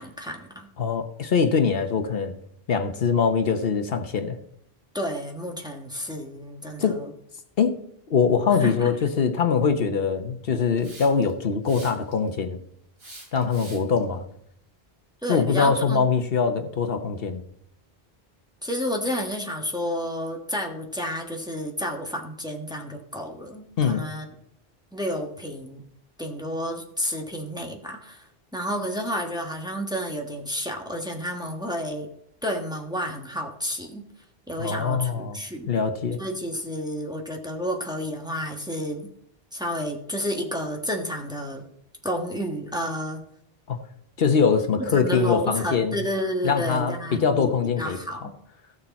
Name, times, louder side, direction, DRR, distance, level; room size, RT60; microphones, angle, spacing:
voice 1, 0.0-0.7 4.9-7.1 8.6-8.9 15.2-16.1 18.6-24.3 24.9-25.8 26.2-32.1 32.4-34.0 34.5-35.7 36.2-39.1 39.5-41.6 42.0-43.2 44.8-48.3, equal, 5° right, 1 dB, 1.3 m, -31 dB
voice 2, 0.8-2.3 2.7-4.4 6.8-7.0 7.6-7.8 8.1-12.6 13.3-14.2 15.3-17.4 23.8-24.0 34.6-35.4 35.7-36.2 43.7-43.8 44.2-46.0 46.4-48.0, left 6 dB, 70° left, 7 dB, 1.1 m, -23 dB
Hiss, 10.8-11.3 11.7-12.3 13.0-14.0, right 1 dB, 75° right, 3.2 m, -44 dB
14.5 x 6.6 x 4.1 m, 0.73 s
omnidirectional pair, 1.0 m